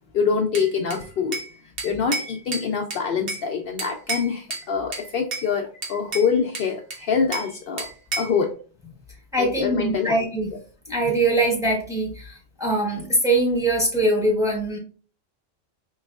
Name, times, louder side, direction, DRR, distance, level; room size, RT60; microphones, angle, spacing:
voice 1, 0.1-1.4 1.8-7.9 8.2-8.5 9.4-10.1, left 6 dB, 65° left, 2 dB, 0.7 m, -25 dB
Bell / Glass, 0.5-1.5 1.8-3.5 3.8-4.7 4.9-5.5 5.8-7.5 7.8-8.4, right 3 dB, 60° right, 1.1 m, -32 dB
voice 2, 9.3-10.5 10.9-14.8, right 2 dB, 5° right, -2 dB, 1.1 m, -22 dB
4.6 x 3.1 x 2.4 m, 0.38 s
omnidirectional pair, 1.1 m